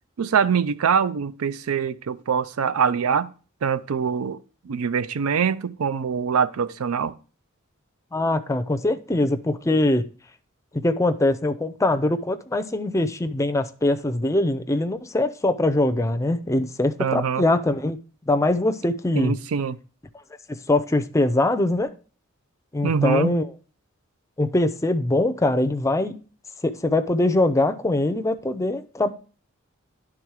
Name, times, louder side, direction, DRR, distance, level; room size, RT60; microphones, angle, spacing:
voice 1, 0.2-3.3 3.6-7.1 17.0-17.4 19.2-19.8 22.8-23.4, right 6 dB, 85° right, 0.4 m, -24 dB
voice 2, 8.1-10.1 10.7-18.0 18.3-19.4 20.5-21.9 22.7-23.5 24.4-26.2 26.6-29.1, left 2 dB, 15° left, 0.5 m, -22 dB
10.5 x 3.6 x 4.7 m
head